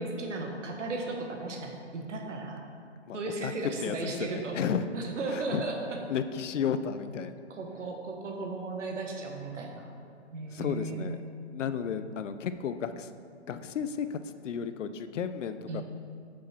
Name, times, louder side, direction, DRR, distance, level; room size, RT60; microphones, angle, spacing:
voice 1, 0.0-2.6 3.1-4.6 4.9-6.0 7.5-10.0 10.3-11.2 15.7-15.8, right 3 dB, 85° right, 2 dB, 1.1 m, -35 dB
voice 2, 3.8-4.9 5.3-5.6 6.1-7.3 10.5-11.2 11.5-13.1 13.5-15.8, left 7 dB, 90° left, 11 dB, 0.5 m, -33 dB
6.2 x 5.6 x 3.1 m, 2.3 s
hypercardioid pair, 165°, 36 cm